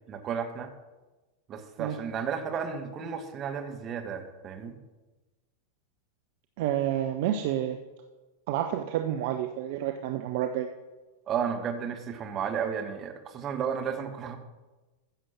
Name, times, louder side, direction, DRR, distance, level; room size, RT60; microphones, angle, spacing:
voice 1, 0.1-0.7 1.5-4.8 11.3-14.4, right 7 dB, 30° right, 5 dB, 1.6 m, -33 dB
voice 2, 6.6-7.8 8.5-10.7, right 11 dB, 50° right, 6 dB, 0.7 m, -29 dB
15.0 x 6.9 x 5.9 m, 1.2 s
figure-of-eight pair, 90°, 0 cm